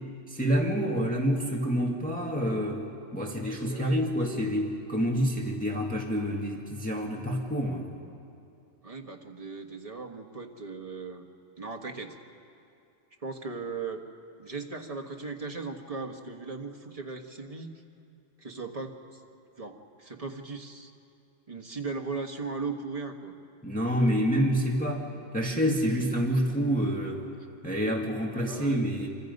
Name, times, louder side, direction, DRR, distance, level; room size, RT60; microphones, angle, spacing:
voice 1, 0.3-2.8 3.1-7.9 23.6-25.0 25.3-27.2 27.6-29.1, equal, 5° left, -1 dB, 1.8 m, -27 dB
voice 2, 3.4-4.6 8.8-11.2 11.6-12.2 13.2-14.0 14.4-17.7 18.4-19.0 19.6-20.9 21.5-23.3 28.4-28.9, right 4 dB, 25° right, 3 dB, 1.4 m, -38 dB
26.0 x 25.5 x 5.4 m, 2.6 s
omnidirectional pair, 1.4 m